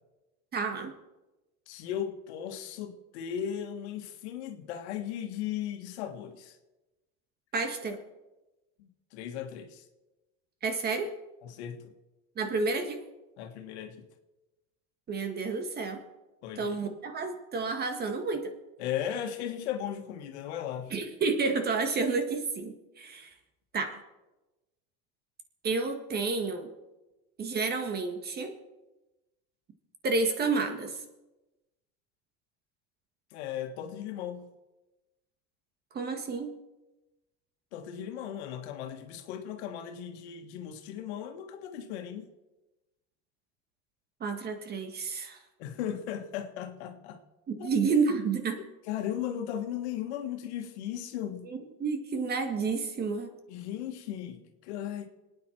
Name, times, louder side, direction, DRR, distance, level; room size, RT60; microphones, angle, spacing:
voice 1, 0.5-0.9 7.5-8.0 10.6-11.1 12.4-13.1 15.1-16.0 16.6-18.5 20.9-23.3 23.7-24.0 25.6-26.7 27.4-28.5 30.0-31.0 35.9-36.6 44.2-45.4 47.5-48.6 51.5-53.3, right 4 dB, 30° right, 6 dB, 1.7 m, -30 dB
voice 2, 1.7-6.6 8.8-9.8 11.4-11.9 13.4-14.0 16.4-16.8 18.8-20.9 33.3-34.5 37.7-42.3 45.6-47.2 47.6-47.7 48.9-51.5 53.5-55.1, left 10 dB, 85° left, 5 dB, 1.8 m, -37 dB
25.5 x 9.5 x 4.5 m, 1.1 s
supercardioid pair, 135°, 32 cm